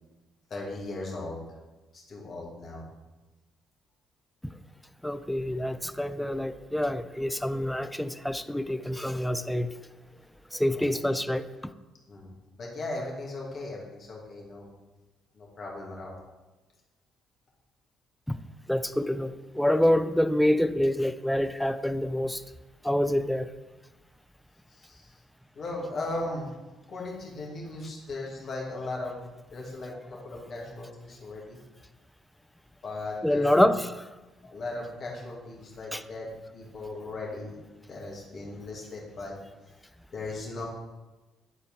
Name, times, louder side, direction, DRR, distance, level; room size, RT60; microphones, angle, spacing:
voice 1, 0.5-1.4 1.9-2.8 5.8-5.9 10.7-10.9 12.1-12.3 12.6-14.7 15.3-16.1 24.7-25.1 25.5-26.5 26.9-29.2 29.5-31.6 32.8-33.7 34.5-37.6 37.9-39.3 40.1-40.7, left 2 dB, 50° left, -2 dB, 2.1 m, -37 dB
voice 2, 5.0-9.7 10.5-11.5 18.3-18.4 18.7-22.4 22.8-23.5 33.2-33.9 35.9-36.0, left 1 dB, 5° left, 11 dB, 0.5 m, -26 dB
9.8 x 4.2 x 3.7 m, 1.1 s
figure-of-eight pair, 45°, 0 cm